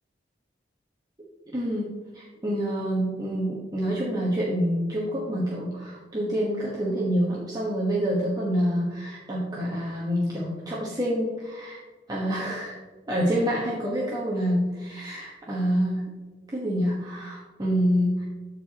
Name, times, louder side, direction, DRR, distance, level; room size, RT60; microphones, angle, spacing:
voice 1, 1.5-1.9 2.1-11.8 12.1-12.8 13.1-16.1 16.5-18.3, equal, 25° right, -5 dB, 1.3 m, -27 dB
13.0 x 4.8 x 2.9 m, 1.3 s
head